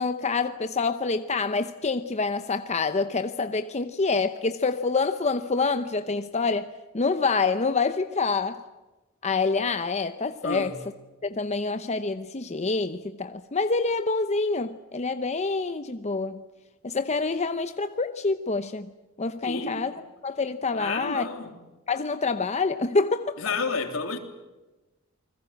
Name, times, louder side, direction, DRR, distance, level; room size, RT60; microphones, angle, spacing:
voice 1, 0.0-8.6 9.2-10.8 11.2-16.4 16.8-18.9 19.2-21.3 21.9-23.4, left 4 dB, 35° left, 0.8 m, -27 dB
voice 2, 10.4-10.7 19.4-19.9 20.7-21.5 23.4-24.2, left 4 dB, 75° left, 3.4 m, -30 dB
28.5 x 21.0 x 7.5 m
head